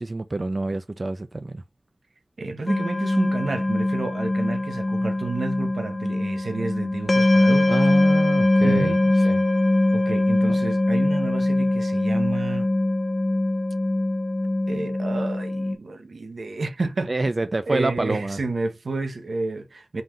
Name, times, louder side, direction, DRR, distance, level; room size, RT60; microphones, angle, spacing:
voice 1, 0.0-1.6 7.7-9.0 9.2-9.4 10.5-10.6 17.1-18.4, right 2 dB, 50° right, 0.5 m, -27 dB
voice 2, 2.4-7.8 8.6-9.3 9.9-12.7 14.7-17.1 17.7-20.0, right 3 dB, 85° right, 0.8 m, -30 dB
sound 1, 2.7-15.8, left 1 dB, 45° left, 0.7 m, -22 dB
4.0 x 2.6 x 4.3 m
wide cardioid pair, 50°, 0 cm